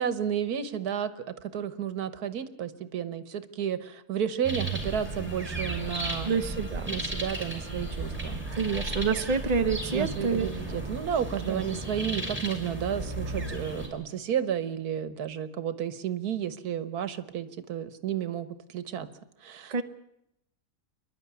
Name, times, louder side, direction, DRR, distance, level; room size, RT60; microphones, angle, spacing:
voice 1, 0.0-6.3 6.9-8.4 9.9-19.1 19.4-19.8, right 9 dB, 80° right, 13 dB, 1.6 m, -32 dB
sound 1, 4.4-13.9, right 2 dB, 5° right, 5.7 m, -34 dB
voice 2, 6.2-7.0 8.5-10.5 11.4-11.7 19.7-19.8, right 5 dB, 30° right, 7 dB, 0.9 m, -28 dB
28.5 x 11.5 x 9.6 m, 0.80 s
omnidirectional pair, 1.6 m